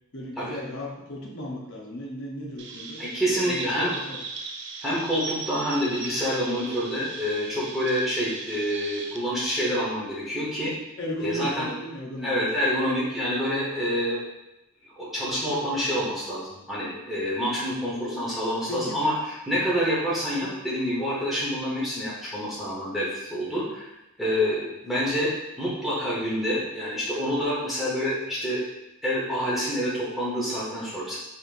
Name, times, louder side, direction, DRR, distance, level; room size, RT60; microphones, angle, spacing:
voice 1, 0.1-4.2 11.0-12.6 18.7-19.0, left 1 dB, 55° left, -1 dB, 0.8 m, -36 dB
Chirp tweet, 2.6-9.2, right 4 dB, 55° right, 0.4 m, -39 dB
voice 2, 3.0-3.9 4.8-10.7 11.2-11.7 12.2-14.2 14.8-23.9 24.2-25.3 25.6-28.6 29.0-31.2, equal, ahead, -8 dB, 1.0 m, -27 dB
4.3 x 3.5 x 2.5 m, 0.95 s
head